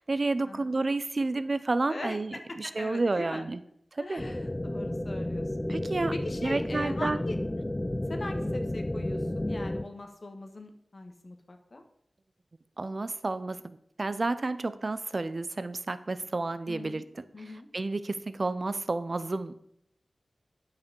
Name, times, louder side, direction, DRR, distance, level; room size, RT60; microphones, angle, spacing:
voice 1, 0.0-3.6 3.9-4.2 5.7-6.1 6.4-7.2 12.8-17.2 17.7-19.6, right 3 dB, 50° right, 13 dB, 0.6 m, -30 dB
voice 2, 1.9-3.5 4.0-5.7 6.1-7.4 8.1-11.8 16.7-17.0 17.3-17.7, left 2 dB, 55° left, 5 dB, 1.3 m, -41 dB
sound 1, 4.2-9.8, left 1 dB, 20° left, 0.5 m, -32 dB
9.0 x 5.7 x 5.2 m, 0.74 s
wide cardioid pair, 60°, 0 cm